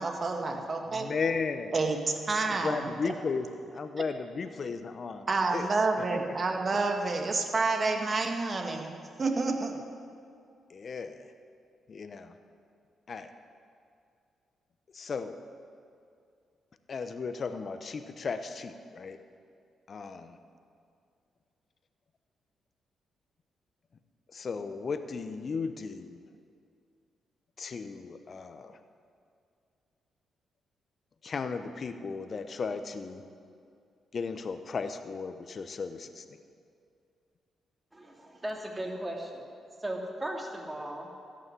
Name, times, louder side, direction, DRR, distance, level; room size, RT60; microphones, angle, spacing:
voice 1, 0.0-1.1 1.7-2.9 5.3-8.9 9.2-9.7, right 3 dB, 45° right, 3 dB, 1.8 m, -29 dB
voice 2, 0.5-1.7 2.4-5.3 5.5-5.7 5.9-6.2 10.7-11.3 11.9-12.3 13.1-13.3 14.9-15.4 16.9-19.2 19.9-20.4 24.3-26.2 27.6-28.8 31.2-33.2 34.1-36.2, left 5 dB, 50° left, 9 dB, 0.9 m, -35 dB
voice 3, 37.9-39.6 39.8-41.1, right 1 dB, 15° right, 0 dB, 2.8 m, -37 dB
14.0 x 6.4 x 9.7 m, 2.4 s
hypercardioid pair, 50°, 0 cm